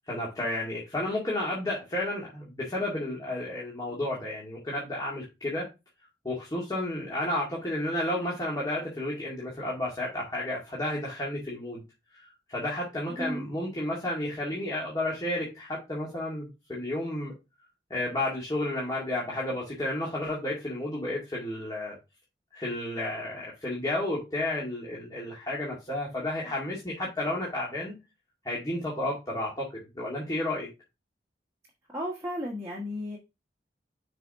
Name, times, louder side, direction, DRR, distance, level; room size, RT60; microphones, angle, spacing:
voice 1, 0.1-5.7 6.2-11.8 12.5-17.3 17.9-22.0 22.5-28.0 28.4-29.7 29.9-30.7, left 1 dB, 20° left, -5 dB, 2.1 m, -32 dB
voice 2, 31.9-33.2, equal, 15° right, -3 dB, 1.3 m, -33 dB
6.6 x 4.3 x 3.6 m, 0.25 s
head